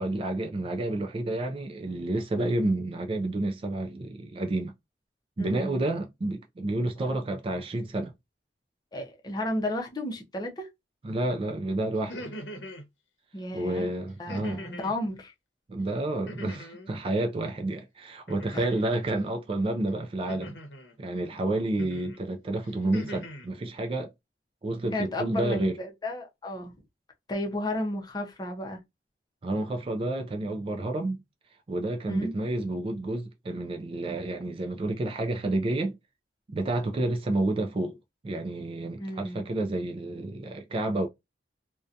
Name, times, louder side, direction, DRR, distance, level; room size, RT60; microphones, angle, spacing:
voice 1, 0.0-4.7 5.4-8.1 11.0-12.1 13.5-14.6 15.7-20.6 21.0-24.1 24.6-25.8 29.4-31.2 31.7-36.0 36.5-38.0 38.2-41.1, right 2 dB, 30° right, 0.3 m, -30 dB
voice 2, 5.4-5.8 7.0-7.1 8.9-10.7 13.3-15.3 18.5-18.7 24.9-26.7 27.3-28.8 32.1-32.3 39.0-39.4, left 1 dB, 25° left, 0.6 m, -33 dB
sound 1, 12.0-12.9 14.3-15.0 16.3-16.9 18.3-18.9 20.3-20.9 21.8-22.2 22.6-23.5, equal, 80° left, 0.8 m, -41 dB
2.6 x 2.2 x 2.4 m
head